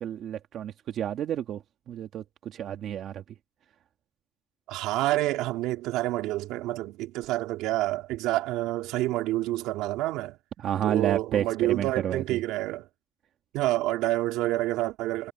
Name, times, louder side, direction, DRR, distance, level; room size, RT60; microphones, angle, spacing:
voice 1, 0.0-1.6 1.9-3.2 10.6-12.4, right 10 dB, 60° right, 2.1 m, -30 dB
voice 2, 4.7-10.4 10.8-12.9 13.5-15.3, right 17 dB, 85° right, 3.5 m, -28 dB
cardioid pair, 120°, 0 cm